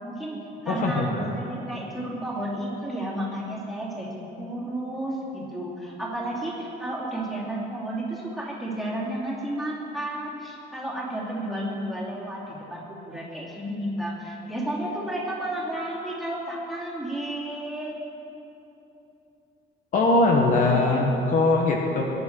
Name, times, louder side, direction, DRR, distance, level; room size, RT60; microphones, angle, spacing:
voice 1, 0.0-18.0, right 1 dB, ahead, -6 dB, 2.8 m, -32 dB
voice 2, 0.7-1.3 19.9-22.0, left 2 dB, 45° left, 0 dB, 1.4 m, -21 dB
21.5 x 11.5 x 4.7 m, 3.0 s
cardioid pair, 175°, 19 cm